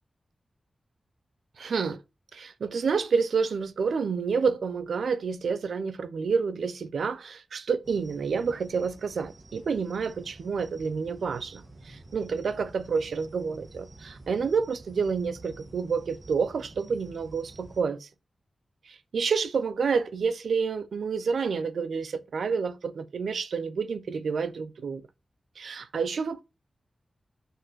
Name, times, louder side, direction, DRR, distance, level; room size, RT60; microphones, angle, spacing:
voice 1, 1.6-2.0 2.3-18.1 18.9-25.0 25.6-26.4, right 5 dB, 85° right, 0.7 m, -29 dB
sound 1, 7.8-17.8, right 2 dB, 45° right, 1.7 m, -49 dB
6.2 x 5.4 x 6.1 m
wide cardioid pair, 110°, 0 cm